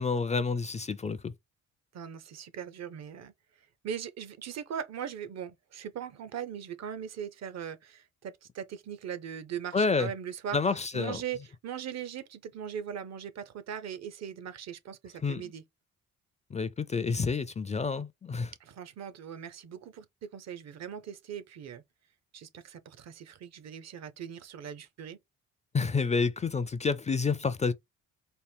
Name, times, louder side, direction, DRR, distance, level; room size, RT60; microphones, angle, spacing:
voice 1, 0.0-1.3 9.7-10.1 10.5-11.2 15.2-15.5 16.5-18.5 25.7-27.7, left 4 dB, 25° left, 0.4 m, -29 dB
voice 2, 1.9-3.3 3.8-10.6 10.9-15.6 18.6-21.8 22.3-25.2, right 8 dB, 60° right, 0.7 m, -40 dB
4.3 x 2.1 x 3.4 m
cardioid pair, 90°, 30 cm